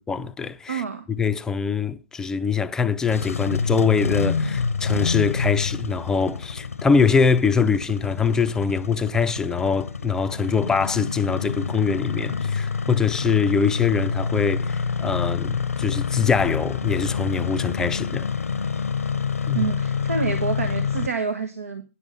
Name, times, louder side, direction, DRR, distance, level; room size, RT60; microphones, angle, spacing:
voice 1, 0.1-0.8 1.1-18.3 19.5-19.7, left 5 dB, 10° left, 0.4 m, -23 dB
voice 2, 0.7-1.0 19.5-21.8, right 5 dB, 85° right, 1.2 m, -27 dB
Engine starting, 2.9-21.1, left 5 dB, 90° left, 0.7 m, -27 dB
9.9 x 7.0 x 5.5 m
hypercardioid pair, 135°, 8 cm